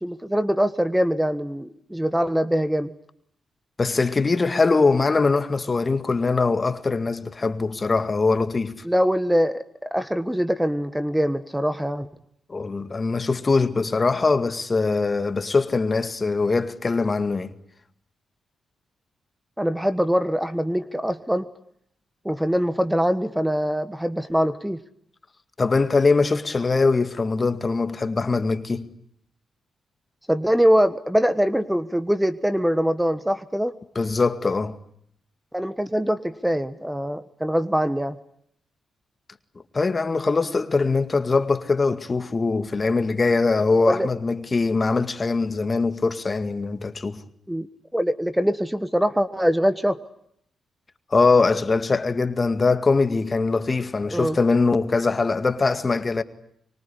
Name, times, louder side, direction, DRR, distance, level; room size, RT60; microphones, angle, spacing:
voice 1, 0.0-2.9 8.8-9.6 9.9-12.1 19.6-21.4 22.2-24.8 30.3-33.7 35.5-38.2 43.9-44.1 47.5-47.7 47.9-50.0 54.1-54.4, equal, 5° right, 1.4 m, -23 dB
voice 2, 3.8-8.8 12.5-17.5 25.6-28.9 34.0-34.7 39.7-47.2 51.1-56.2, left 4 dB, 35° left, 2.0 m, -22 dB
24.5 x 24.0 x 9.9 m
supercardioid pair, 50°, 0 cm